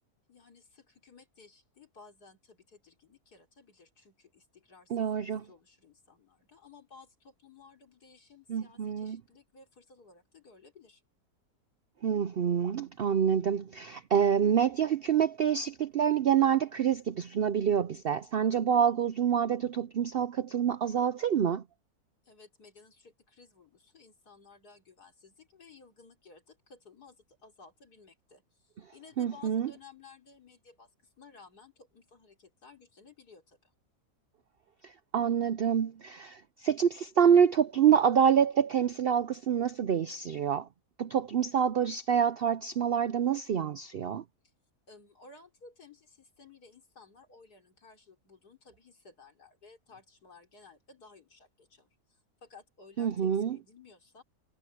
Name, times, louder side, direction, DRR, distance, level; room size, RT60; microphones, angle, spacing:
voice 1, 0.3-11.0 22.2-33.7 44.9-54.2, left 4 dB, 80° left, 4.2 m, -56 dB
voice 2, 4.9-5.4 8.5-9.2 12.0-21.6 29.2-29.7 34.8-40.7 41.0-44.2 53.0-53.6, right 8 dB, 70° right, 0.5 m, -27 dB
omnidirectional pair, 1.7 m